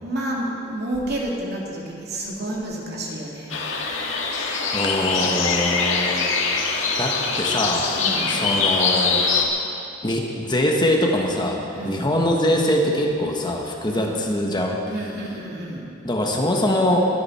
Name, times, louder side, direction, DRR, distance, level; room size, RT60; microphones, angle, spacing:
voice 1, 0.0-3.5 7.9-8.4 11.7-12.1 13.9-14.1 14.9-16.0, right 1 dB, 60° right, -2 dB, 2.6 m, -30 dB
sound 1, 3.5-9.4, left 4 dB, 85° left, 1.7 m, -23 dB
voice 2, 4.7-6.3 7.0-7.9 8.3-9.2 10.0-14.8 16.0-17.0, left 1 dB, 25° left, 0 dB, 1.4 m, -23 dB
23.0 x 11.0 x 4.4 m, 2.7 s
head